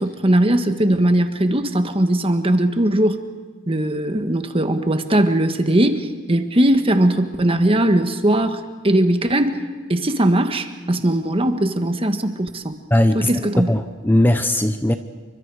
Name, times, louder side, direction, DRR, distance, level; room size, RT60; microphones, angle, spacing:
voice 1, 0.0-3.2 3.7-9.6 9.9-12.7 13.2-13.7, right 1 dB, 30° right, 7 dB, 1.5 m, -19 dB
voice 2, 12.9-13.3 13.7-15.0, left 1 dB, 10° left, 8 dB, 0.8 m, -18 dB
28.5 x 25.0 x 4.9 m, 1.5 s
head